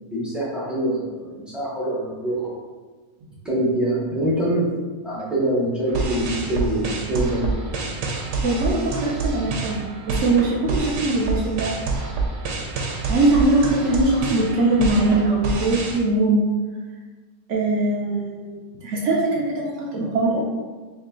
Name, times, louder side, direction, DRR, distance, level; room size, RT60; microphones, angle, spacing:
voice 1, 0.1-2.5 3.4-4.7 5.0-7.5, right 1 dB, ahead, -8 dB, 0.4 m, -24 dB
sound 1, 5.9-16.0, right 3 dB, 80° right, 1.1 m, -27 dB
voice 2, 8.4-11.7 13.1-16.4 17.5-20.5, right 2 dB, 65° right, -2 dB, 0.8 m, -21 dB
3.2 x 2.7 x 3.6 m, 1.4 s
omnidirectional pair, 1.7 m